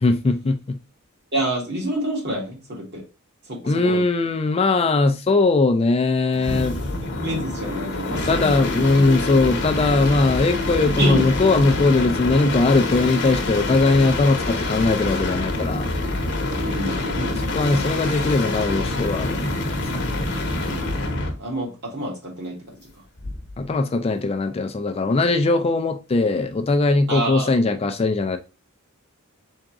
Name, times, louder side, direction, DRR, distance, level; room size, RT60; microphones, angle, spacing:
voice 1, 0.0-0.8 3.6-6.8 8.3-15.9 17.5-20.0 23.6-28.4, left 3 dB, 30° left, 0.4 m, -20 dB
voice 2, 1.3-3.0 3.4-4.0 7.0-8.5 11.0-11.3 16.6-17.9 20.6-20.8 21.4-22.8 27.1-27.5, right 1 dB, 55° right, 1.8 m, -28 dB
sound 1, 6.3-21.4 23.2-23.6, left 2 dB, 55° left, 0.9 m, -26 dB
3.6 x 3.6 x 2.9 m
head